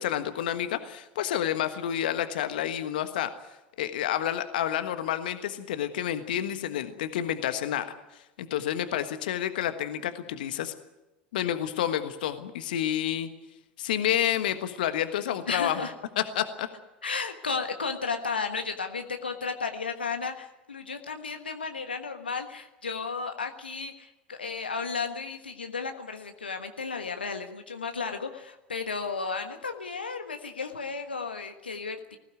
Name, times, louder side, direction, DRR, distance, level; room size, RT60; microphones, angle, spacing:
voice 1, 0.0-3.3 3.8-7.9 8.1-10.7 11.3-13.3 13.8-15.9 16.2-16.7, left 11 dB, 65° left, 9 dB, 1.4 m, -29 dB
voice 2, 15.5-15.9 17.0-32.2, left 5 dB, 80° left, 6 dB, 1.4 m, -34 dB
20.0 x 16.0 x 9.3 m, 0.99 s
figure-of-eight pair, 80°, 5 cm